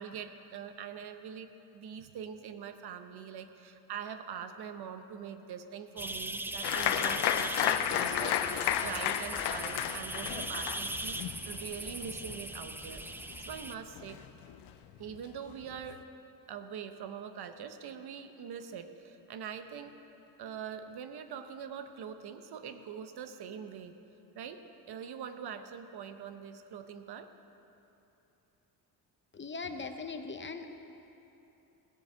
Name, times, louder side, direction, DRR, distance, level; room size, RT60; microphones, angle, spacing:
voice 1, 0.0-14.2 15.0-16.0 16.5-19.9 20.4-24.0 24.3-24.6 24.9-27.3, right 7 dB, 70° right, 8 dB, 0.9 m, -43 dB
sound 1, 6.0-13.8, right 2 dB, 5° right, 0.4 m, -40 dB
Applause, 6.6-13.7 14.0-14.7 15.1-15.2 15.5-16.0, left 10 dB, 90° left, 0.7 m, -32 dB
voice 2, 29.3-30.7, left 4 dB, 30° left, 6 dB, 0.9 m, -40 dB
16.5 x 8.0 x 6.8 m, 2.9 s
cardioid pair, 100°, 40 cm